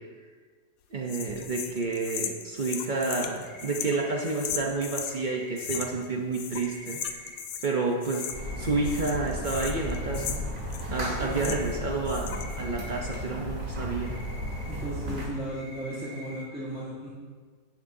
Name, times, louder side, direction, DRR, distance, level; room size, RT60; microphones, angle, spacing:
voice 1, 0.9-7.0 7.6-8.3 8.6-10.4 10.9-14.1, right 3 dB, 75° right, 0 dB, 0.4 m, -30 dB
sound 1, 1.1-5.2 5.6-6.1 6.3-7.7 8.0-8.6 8.8-11.8 12.1-12.6, left 8 dB, 90° left, 1.4 m, -37 dB
sound 2, 3.3-16.5, left 1 dB, 35° left, 0.7 m, -48 dB
sound 3, 8.3-15.3, equal, 25° right, 2.3 m, -34 dB
voice 2, 11.2-11.5 14.7-17.1, right 1 dB, 5° right, -9 dB, 1.3 m, -36 dB
11.5 x 10.0 x 2.7 m, 1.5 s
omnidirectional pair, 2.0 m